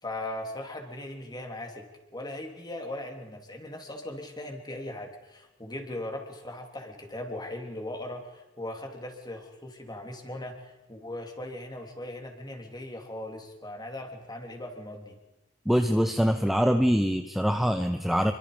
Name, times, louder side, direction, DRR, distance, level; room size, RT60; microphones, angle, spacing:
voice 1, 0.0-1.9 2.1-15.2, left 1 dB, 20° left, 3 dB, 3.7 m, -39 dB
voice 2, 15.7-18.3, equal, ahead, 6 dB, 0.9 m, -24 dB
27.5 x 24.0 x 5.3 m, 0.97 s
head